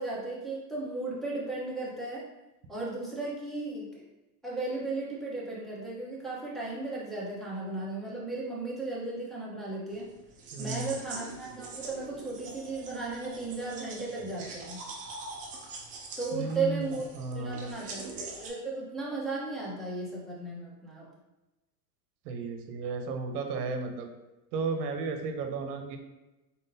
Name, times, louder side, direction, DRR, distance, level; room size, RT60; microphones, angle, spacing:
voice 1, 0.0-2.2 2.7-4.0 4.4-10.1 10.6-14.8 16.2-17.1 17.3-21.1, right 3 dB, ahead, -6 dB, 1.0 m, -35 dB
sound 1, 9.9-18.5, right 3 dB, 20° right, 0.3 m, -43 dB
voice 2, 10.5-11.0 16.3-16.9 17.1-17.8 22.3-24.1 24.5-26.0, right 4 dB, 70° right, 5 dB, 0.9 m, -34 dB
4.1 x 3.6 x 2.8 m, 1.0 s
supercardioid pair, 135°, 49 cm